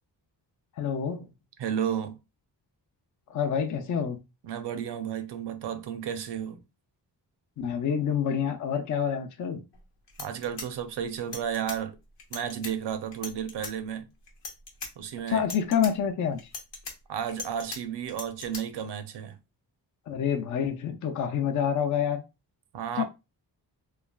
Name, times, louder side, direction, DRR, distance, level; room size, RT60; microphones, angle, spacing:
voice 1, 0.8-1.3 3.3-4.2 7.6-9.6 15.3-16.4 20.1-22.2 23.0-23.1, left 8 dB, 45° left, 0.5 m, -27 dB
voice 2, 1.6-2.2 4.4-6.6 10.2-12.0 12.3-14.1 15.0-15.5 17.1-19.4 22.7-23.0, right 8 dB, 65° right, 0.6 m, -32 dB
sound 1, 9.7-9.8 10.1-11.8 12.2-12.7 13.1-13.7 14.3-14.9 15.3-15.9 16.4-17.8 18.1-18.6, left 3 dB, 75° left, 0.9 m, -39 dB
3.2 x 2.2 x 2.2 m
cardioid pair, 75°, 43 cm